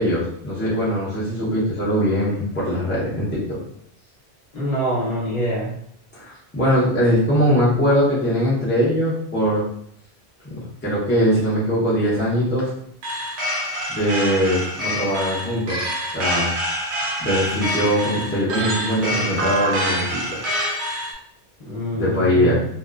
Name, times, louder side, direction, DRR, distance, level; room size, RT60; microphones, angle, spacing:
voice 1, 0.0-3.6 6.1-9.6 10.5-12.7 13.3-13.4 13.9-15.8 16.1-16.5 17.2-20.4 21.9-22.6, equal, 10° left, -7 dB, 0.7 m, -21 dB
voice 2, 4.5-5.7 21.6-22.7, right 1 dB, 40° left, -7 dB, 0.9 m, -25 dB
sound 1, 13.0-21.1, equal, 90° right, 1.0 m, -26 dB
2.8 x 2.2 x 2.4 m, 0.70 s
omnidirectional pair, 1.1 m